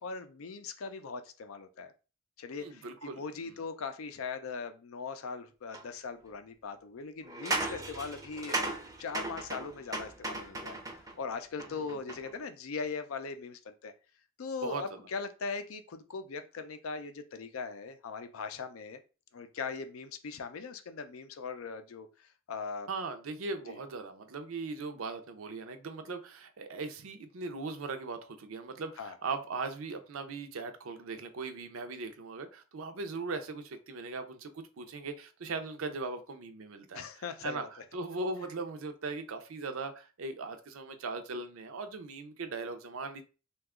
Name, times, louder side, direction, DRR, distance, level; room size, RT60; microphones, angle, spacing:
voice 1, 0.0-1.9 2.4-8.7 9.0-13.9 14.4-19.0 19.3-22.9 23.7-23.8 29.0-29.2 36.9-37.7, left 5 dB, 75° left, 9 dB, 0.4 m, -40 dB
voice 2, 2.6-3.6 11.7-12.0 14.6-15.0 22.9-37.1 37.4-43.2, right 3 dB, 75° right, 8 dB, 0.5 m, -39 dB
sound 1, 5.7-5.8 7.2-11.1 11.6-12.4, right 2 dB, 15° right, 0.5 m, -36 dB
2.8 x 2.3 x 3.5 m, 0.34 s
head